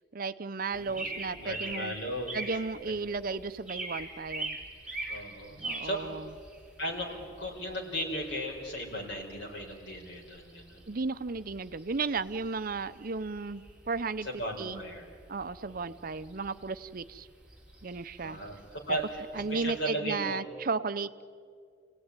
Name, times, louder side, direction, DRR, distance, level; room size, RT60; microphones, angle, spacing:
voice 1, 0.1-2.0 2.3-4.6 5.5-6.3 10.9-14.8 15.3-17.3 17.8-18.4 19.3-21.1, right 4 dB, 50° right, 13 dB, 0.7 m, -34 dB
voice 2, 0.7-2.4 2.9-3.0 5.1-5.6 5.8-6.0 6.8-10.8 14.2-15.1 15.6-15.8 18.2-18.6 18.9-19.0 19.5-20.4, equal, 90° left, 0 dB, 5.1 m, -36 dB
sound 1, 0.7-19.8, right 2 dB, 5° right, 3.8 m, -44 dB
27.5 x 17.5 x 9.8 m, 2.2 s
head